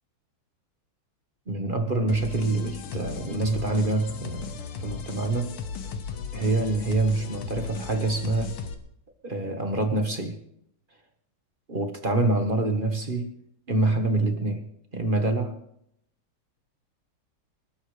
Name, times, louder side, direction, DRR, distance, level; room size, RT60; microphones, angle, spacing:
voice 1, 1.5-5.5 6.3-8.6 9.2-10.4 11.7-13.3 13.7-14.7 14.9-15.5, right 2 dB, 30° right, 5 dB, 1.2 m, -26 dB
sound 1, 2.1-8.7, left 5 dB, 75° left, 2.0 m, -36 dB
27.0 x 13.0 x 3.3 m, 0.74 s
omnidirectional pair, 2.4 m